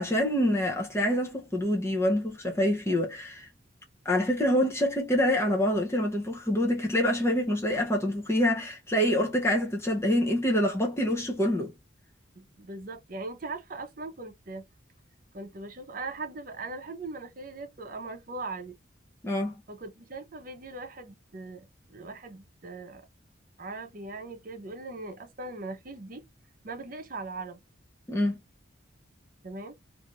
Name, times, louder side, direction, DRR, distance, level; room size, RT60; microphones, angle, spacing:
voice 1, 0.0-3.5 4.0-11.7 19.2-19.5 28.1-28.4, left 1 dB, 15° left, 0.5 m, -26 dB
voice 2, 12.4-14.7 15.3-18.7 19.7-23.1 23.6-26.2 26.6-27.6 29.4-29.8, right 3 dB, 45° right, 0.7 m, -40 dB
2.6 x 2.4 x 3.0 m
head